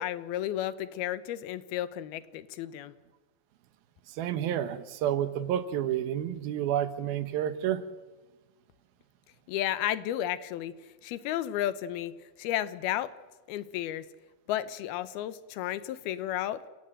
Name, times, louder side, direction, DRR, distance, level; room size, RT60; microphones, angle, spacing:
voice 1, 0.0-2.9 9.5-10.7 11.0-12.1 12.4-13.1 13.5-14.0 14.5-16.6, left 12 dB, 85° left, 15 dB, 2.9 m, -32 dB
voice 2, 4.1-7.8, right 10 dB, 80° right, 12 dB, 3.0 m, -30 dB
29.0 x 17.0 x 9.0 m, 1.2 s
omnidirectional pair, 4.3 m